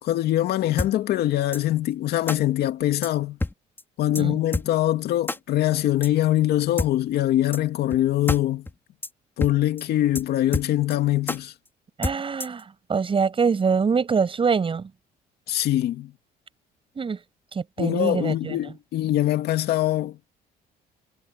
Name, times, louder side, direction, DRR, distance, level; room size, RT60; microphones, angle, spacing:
voice 1, 0.0-3.4 4.0-8.7 9.4-11.5 15.5-16.1 17.8-20.2, left 13 dB, 70° left, 2.3 m, -23 dB
sound 1, 0.8-0.9 1.5-1.6 2.3-2.4 3.0-3.1 3.4-3.5 3.8-3.9 4.2-4.3 4.5-4.7 5.3-5.4 6.0-6.1 6.8-6.9 7.5-7.6 7.9-8.0 8.3-8.4 8.7-8.8 9.0-9.1 9.4-9.5 9.8-9.9 10.2-10.3 10.5-11.0 11.3-11.4 12.0-12.6, left 2 dB, 15° left, 4.9 m, -27 dB
voice 2, 12.0-14.9 17.0-17.2 17.5-18.6, right 5 dB, 30° right, 7.8 m, -24 dB
cardioid pair, 110°, 17 cm